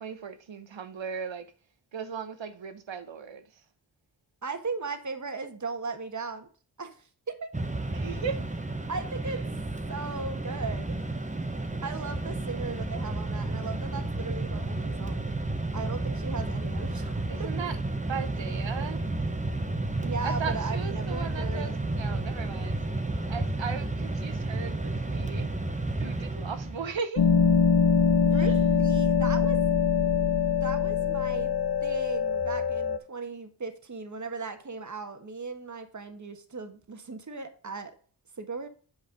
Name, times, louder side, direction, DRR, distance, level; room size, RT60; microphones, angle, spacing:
voice 1, 0.0-1.5 1.9-3.4 7.9-8.5 17.3-17.8 18.1-19.0 20.2-22.8 23.3-25.5 26.0-27.3 28.3-28.5, right 6 dB, 70° right, 1.2 m, -37 dB
voice 2, 4.4-6.5 6.8-7.5 8.9-9.5 9.9-11.0 11.8-15.3 15.7-17.5 19.9-21.8 28.2-29.7 30.1-30.2 30.6-31.5 31.8-37.9 38.4-38.7, right 4 dB, 40° right, 1.5 m, -37 dB
Mechanisms, 7.5-27.0, right 2 dB, 15° right, 1.2 m, -32 dB
sound 1, 27.2-33.0, left 6 dB, 55° left, 1.1 m, -23 dB
8.4 x 4.8 x 5.1 m
cardioid pair, 55°, 47 cm